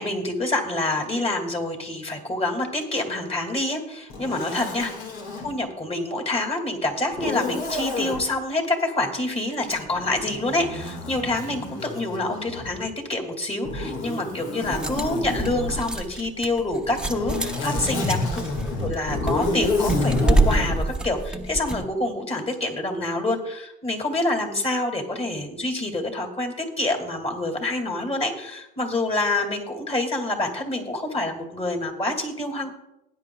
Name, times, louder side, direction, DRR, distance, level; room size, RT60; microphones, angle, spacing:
voice 1, 0.0-4.9 5.4-18.4 18.8-32.7, left 2 dB, 30° left, 3 dB, 2.5 m, -27 dB
Zipper (clothing), 4.1-5.5 7.1-8.2 9.6-12.9 13.6-15.9 16.8-20.8, left 2 dB, 85° left, 2.1 m, -29 dB
sound 1, 14.6-21.9, right 2 dB, 5° right, 1.0 m, -27 dB
19.0 x 9.7 x 2.3 m, 0.87 s
cardioid pair, 90°, 20 cm